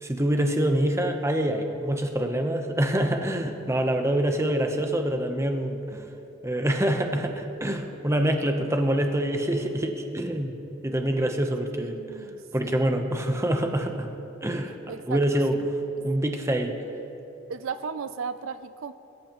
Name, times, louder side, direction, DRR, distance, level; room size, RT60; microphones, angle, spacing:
voice 1, 0.0-6.1 6.4-10.5 10.8-12.2 12.5-14.1 14.4-14.7 15.1-15.5 16.0-16.8, right 1 dB, 15° right, 4 dB, 0.9 m, -26 dB
voice 2, 11.8-13.1 14.9-15.7 17.5-18.9, right 6 dB, 70° right, 12 dB, 0.4 m, -36 dB
22.5 x 13.5 x 3.1 m, 3.0 s
head